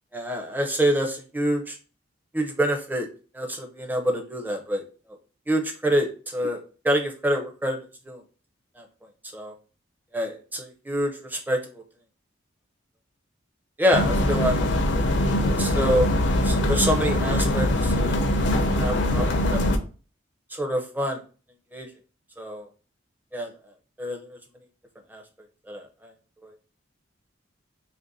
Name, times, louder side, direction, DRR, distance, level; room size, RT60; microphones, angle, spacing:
voice 1, 0.1-1.8 2.3-3.1 3.3-4.8 5.5-6.1 6.3-7.8 8.1-8.2 8.8-8.9 9.3-9.5 10.1-11.6 13.8-14.6 15.6-16.1 16.4-18.2 18.7-19.6 20.6-21.2 21.7-21.9 22.4-22.7 23.3-23.5 24.0-24.2 25.1-25.2 25.7-25.8, equal, 10° right, 2 dB, 0.5 m, -26 dB
sound 1, 13.9-19.8, left 1 dB, 60° left, 0.5 m, -22 dB
2.9 x 2.5 x 4.0 m, 0.38 s
head